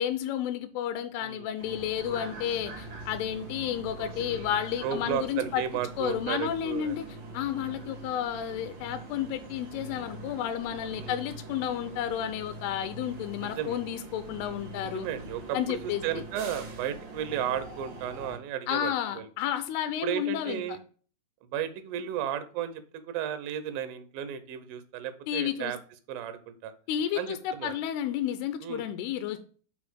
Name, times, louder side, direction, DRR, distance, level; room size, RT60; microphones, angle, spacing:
voice 1, 0.0-5.6 6.0-7.1 7.3-15.1 15.5-16.0 18.7-20.6 25.3-25.7 26.9-29.4, left 10 dB, 85° left, 10 dB, 2.6 m, -31 dB
sound 1, 1.6-18.4, right 3 dB, 50° right, 2.2 m, -43 dB
voice 2, 4.8-7.0 11.0-11.2 13.4-13.8 14.9-19.3 20.0-20.8 21.4-25.8 26.1-26.7 27.2-27.7 28.6-28.9, right 9 dB, 75° right, 11 dB, 2.4 m, -34 dB
5.9 x 4.2 x 6.0 m, 0.42 s
omnidirectional pair, 4.7 m